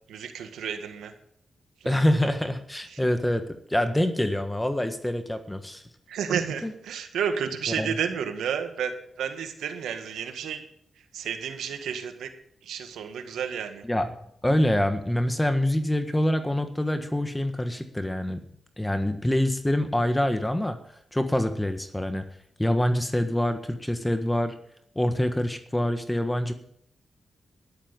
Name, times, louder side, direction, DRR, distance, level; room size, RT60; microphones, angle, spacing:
voice 1, 0.1-1.1 1.8-2.1 2.9-3.0 6.1-8.9 9.2-10.6 11.1-12.3 12.6-13.8, right 7 dB, 90° right, 7 dB, 1.7 m, -31 dB
voice 2, 1.8-3.4 3.7-5.8 6.6-6.7 7.8-7.9 13.8-14.1 14.4-18.4 18.8-20.8 21.1-22.2 22.6-24.5 24.9-26.5, left 1 dB, 10° left, 8 dB, 1.5 m, -25 dB
12.5 x 11.5 x 5.4 m, 0.70 s
cardioid pair, 55°, 0 cm